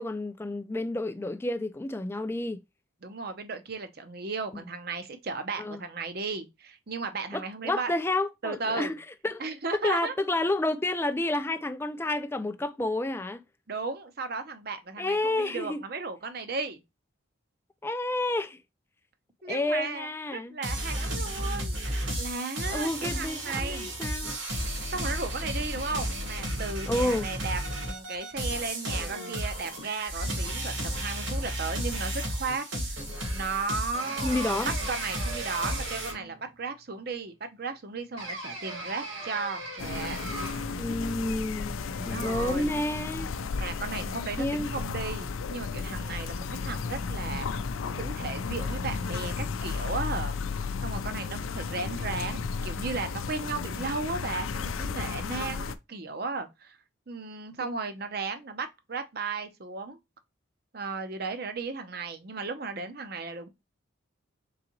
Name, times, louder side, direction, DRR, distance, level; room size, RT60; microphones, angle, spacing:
voice 1, 0.0-2.6 4.5-4.6 5.6-5.8 7.3-9.0 9.2-9.4 9.8-13.4 15.0-15.8 17.8-18.6 19.5-20.5 22.7-24.4 26.9-27.3 34.2-34.7 40.8-43.3 44.4-44.7 57.6-57.7, left 2 dB, 10° left, 0.3 m, -30 dB
voice 2, 3.0-7.9 8.4-9.0 9.4-10.1 13.7-16.8 19.4-23.9 24.9-33.0 33.3-34.6 34.9-40.2 42.0-42.8 43.6-47.5 48.0-50.4 50.8-56.8 57.1-60.0 60.7-63.5, right 4 dB, 50° right, 0.7 m, -35 dB
sound 1, 20.6-36.1, right 1 dB, 70° right, 1.9 m, -33 dB
sound 2, 33.9-36.5 38.2-40.8, right 2 dB, 85° right, 2.0 m, -39 dB
sound 3, 39.8-55.7, left 5 dB, 80° left, 0.4 m, -33 dB
3.9 x 3.7 x 2.9 m
head